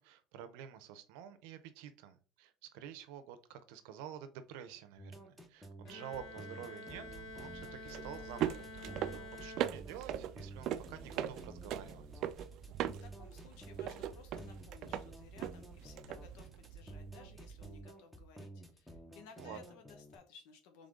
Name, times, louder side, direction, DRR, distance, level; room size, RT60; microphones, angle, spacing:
voice 1, 0.0-12.1 19.4-19.6, right 9 dB, 85° right, 10 dB, 0.6 m, -49 dB
sound 1, 5.0-20.2, right 1 dB, ahead, 0.7 m, -52 dB
Bowed string instrument, 5.9-10.3, left 2 dB, 65° left, 1.2 m, -49 dB
sound 2, 6.9-17.8, right 11 dB, 50° right, 0.3 m, -41 dB
voice 2, 13.0-20.9, left 5 dB, 80° left, 5 dB, 0.9 m, -58 dB
3.7 x 3.5 x 3.7 m, 0.37 s
cardioid pair, 155°, 0 cm